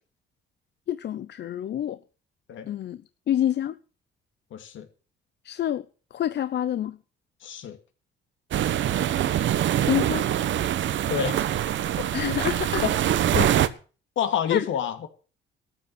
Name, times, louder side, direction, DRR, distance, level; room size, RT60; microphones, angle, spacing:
voice 1, 0.9-2.0 2.7-3.0 3.3-3.8 5.4-5.8 6.1-7.0 9.9-10.3 12.1-12.8 13.3-13.5 14.5-14.7, left 11 dB, 60° left, 0.7 m, -27 dB
voice 2, 4.5-4.9 7.4-7.8 11.1-11.3 12.8-12.9 13.3-13.5 14.2-15.1, left 9 dB, 75° left, 2.5 m, -27 dB
sound 1, 8.5-13.7, right 11 dB, 70° right, 1.1 m, -24 dB
13.5 x 7.5 x 8.6 m
cardioid pair, 90°, 20 cm